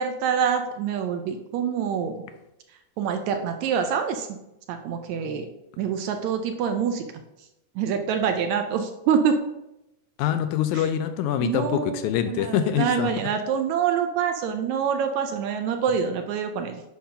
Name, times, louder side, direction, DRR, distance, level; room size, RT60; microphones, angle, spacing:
voice 1, 0.0-2.2 3.0-4.3 4.7-5.5 5.8-7.1 7.8-9.4 10.7-10.9 11.4-16.8, right 7 dB, 75° right, 1.8 m, -26 dB
voice 2, 10.2-13.1, left 10 dB, 80° left, 1.8 m, -25 dB
8.5 x 3.9 x 5.6 m
omnidirectional pair, 3.6 m